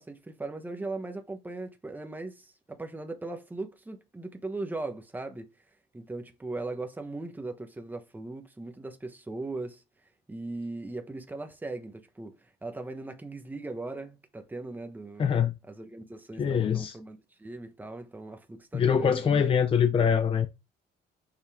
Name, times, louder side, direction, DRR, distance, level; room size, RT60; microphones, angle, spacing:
voice 1, 0.0-5.5 5.9-9.8 10.3-15.3 15.7-19.5, right 2 dB, 10° right, 1.1 m, -39 dB
voice 2, 15.2-15.6 16.4-17.0 18.7-20.5, left 7 dB, 30° left, 0.6 m, -24 dB
6.9 x 5.5 x 3.6 m
cardioid pair, 140°, 18 cm